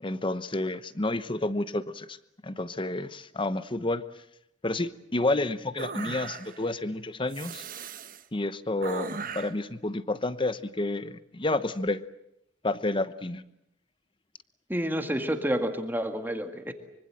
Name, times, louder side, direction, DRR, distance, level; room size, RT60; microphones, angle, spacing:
voice 1, 0.0-2.2 2.4-4.1 4.6-7.7 8.3-12.0 12.6-13.4, left 2 dB, 25° left, 13 dB, 1.0 m, -30 dB
sound 1, 5.8-6.7 7.3-8.2 8.8-9.6, right 5 dB, 50° right, 1.2 m, -38 dB
voice 2, 14.7-16.7, equal, 10° right, 5 dB, 1.9 m, -29 dB
25.0 x 24.5 x 7.7 m, 0.81 s
head